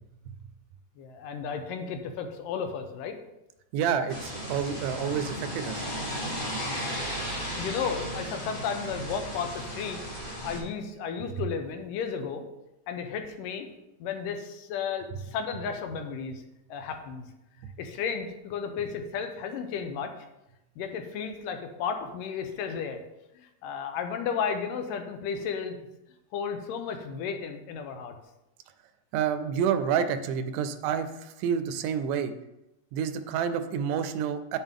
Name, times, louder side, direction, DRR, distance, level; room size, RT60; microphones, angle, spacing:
voice 1, 1.0-3.2 6.9-10.0 10.4-12.4 12.9-13.7 14.0-16.4 16.7-17.3 17.8-20.1 20.8-23.0 23.3-25.8 26.3-28.2, left 6 dB, 85° left, 6 dB, 2.4 m, -33 dB
voice 2, 3.7-5.9 29.1-32.3 32.9-34.6, right 8 dB, 80° right, 10 dB, 2.0 m, -29 dB
sound 1, 4.1-10.6, equal, 40° left, 0.7 m, -35 dB
8.1 x 7.2 x 3.6 m, 0.91 s
omnidirectional pair, 3.8 m